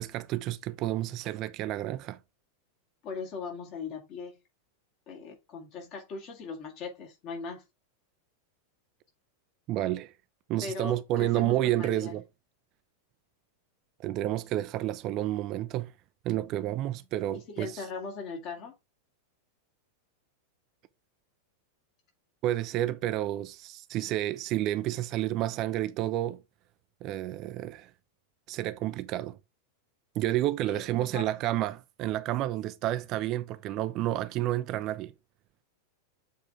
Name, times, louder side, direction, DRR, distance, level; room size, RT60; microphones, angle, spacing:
voice 1, 0.0-2.2 9.7-10.1 10.5-12.2 14.0-15.9 16.2-17.8 22.4-26.4 27.0-27.9 28.5-29.4 30.2-35.1, right 14 dB, 40° right, 0.5 m, -30 dB
voice 2, 3.0-4.4 5.1-7.6 10.6-12.1 17.5-18.7 30.6-31.3, left 4 dB, 40° left, 2.2 m, -39 dB
7.4 x 3.7 x 3.6 m
figure-of-eight pair, 90°, 0 cm